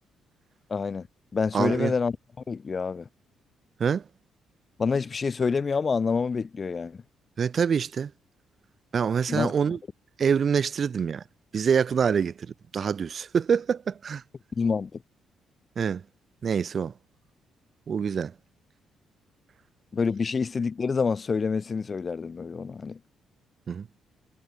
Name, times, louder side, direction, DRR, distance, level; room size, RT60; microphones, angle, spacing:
voice 1, 0.7-1.1 1.3-2.2 2.5-3.1 4.8-7.0 9.3-9.5 14.6-15.0 19.9-23.0, left 5 dB, 35° left, 0.9 m, -27 dB
voice 2, 1.5-1.9 3.8-4.0 7.4-8.1 8.9-9.8 10.2-11.2 11.5-12.5 12.7-14.2 15.8-16.0 16.4-16.9 17.9-18.3 23.7-23.9, right 6 dB, 50° right, 0.4 m, -25 dB
cardioid pair, 90°, 0 cm